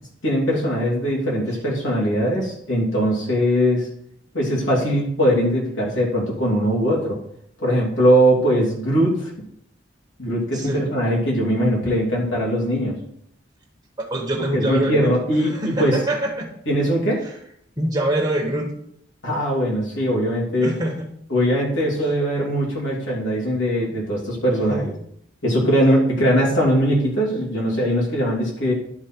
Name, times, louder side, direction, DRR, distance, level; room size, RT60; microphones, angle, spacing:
voice 1, 0.2-3.9 4.3-7.2 7.6-9.3 10.2-12.9 14.4-16.0 16.7-17.2 19.2-20.7 21.3-24.9 25.4-28.7, equal, 80° left, -4 dB, 2.9 m, -20 dB
voice 2, 10.5-10.9 14.0-15.1 15.4-16.5 17.2-17.4 17.8-18.7 20.6-21.1 22.0-22.1 24.5-24.9, right 1 dB, 25° right, -1 dB, 1.2 m, -25 dB
11.0 x 4.4 x 4.5 m, 0.70 s
head